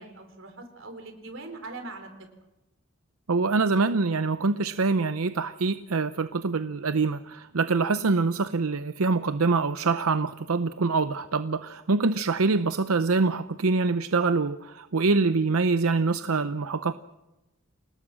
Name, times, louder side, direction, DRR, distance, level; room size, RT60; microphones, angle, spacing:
voice 1, 0.0-2.1, right 2 dB, 60° right, 6 dB, 4.3 m, -41 dB
voice 2, 3.3-16.9, right 4 dB, 85° right, 12 dB, 0.7 m, -25 dB
28.5 x 19.0 x 6.2 m, 0.98 s
head